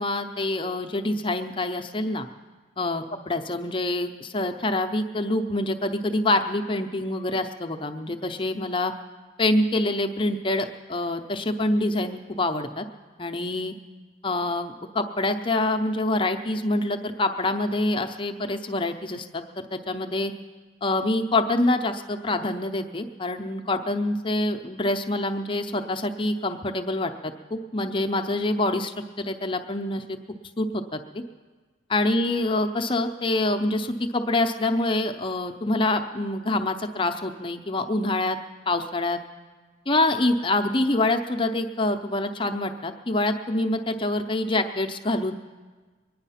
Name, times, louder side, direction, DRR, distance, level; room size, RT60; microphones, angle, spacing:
voice 1, 0.0-2.3 2.8-8.9 9.4-12.8 13.2-13.7 14.2-20.3 20.8-30.0 30.6-31.0 31.9-38.4 38.7-39.2 39.9-45.3, left 2 dB, 25° left, 6 dB, 0.6 m, -26 dB
22.5 x 9.9 x 5.7 m, 1.4 s
head